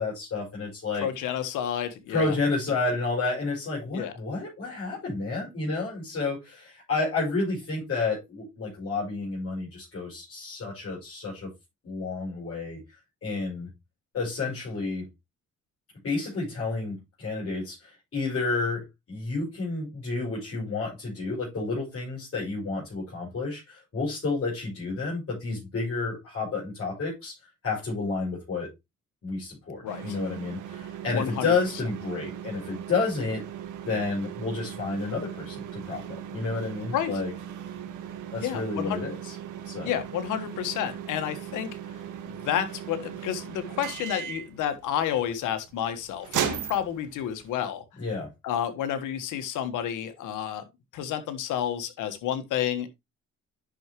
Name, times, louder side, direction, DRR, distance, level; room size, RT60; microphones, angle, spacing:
voice 1, 0.0-1.1 2.1-11.5 11.8-12.8 13.2-13.7 14.1-15.1 16.0-18.8 19.1-27.4 27.6-28.7 29.2-33.4 33.8-37.3 38.3-39.3 39.6-39.9 48.0-48.3, left 3 dB, 50° left, 6.4 m, -30 dB
voice 2, 1.0-2.3 3.9-4.1 29.8-30.2 31.1-31.5 36.9-37.1 38.4-39.0 39.8-41.7 42.3-47.8 48.4-50.6 50.9-52.9, left 10 dB, 90° left, 1.5 m, -30 dB
sound 1, 29.9-47.6, right 9 dB, 80° right, 1.7 m, -38 dB
10.5 x 6.1 x 3.0 m
cardioid pair, 90°, 30 cm